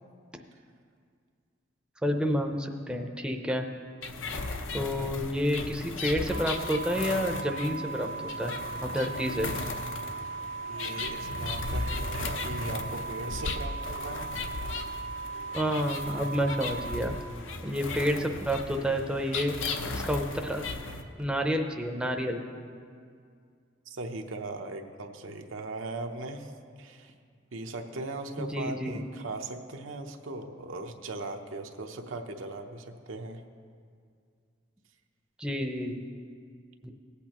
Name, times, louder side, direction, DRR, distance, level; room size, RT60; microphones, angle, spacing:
voice 1, 2.0-3.7 4.7-8.5 8.8-9.5 15.5-17.1 17.6-19.5 20.0-20.7 21.2-22.4 28.4-29.0 35.4-36.0 36.8-36.9, equal, 5° right, 3 dB, 0.5 m, -29 dB
sound 1, 4.0-21.0, left 3 dB, 75° left, 0.7 m, -36 dB
sound 2, 6.3-17.0, right 5 dB, 50° right, 0.7 m, -38 dB
voice 2, 10.7-14.3 23.9-26.5 26.8-27.1 27.5-33.4, right 2 dB, 90° right, 4 dB, 0.8 m, -39 dB
sound 3, 11.3-13.0 15.2-15.3 15.5-16.7 17.5-19.2, equal, 55° left, 1.4 m, -48 dB
18.5 x 8.3 x 3.0 m, 2.2 s
head